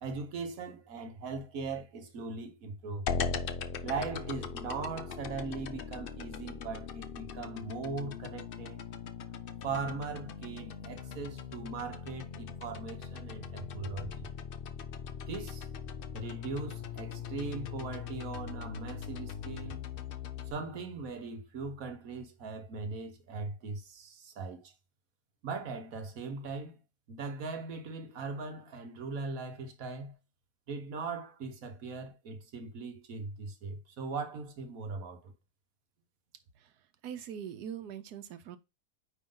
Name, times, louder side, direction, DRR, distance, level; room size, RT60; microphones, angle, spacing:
voice 1, 0.0-3.1 3.8-8.8 9.3-9.4 9.6-14.3 15.3-15.7 16.1-19.8 20.4-24.7 25.4-26.8 27.1-30.1 30.7-35.3, right 4 dB, 60° right, 1.5 m, -39 dB
sound 1, 3.1-20.5, left 6 dB, 80° left, 0.5 m, -40 dB
voice 2, 36.5-38.6, right 9 dB, 80° right, 1.3 m, -43 dB
9.1 x 3.1 x 3.8 m
omnidirectional pair, 1.7 m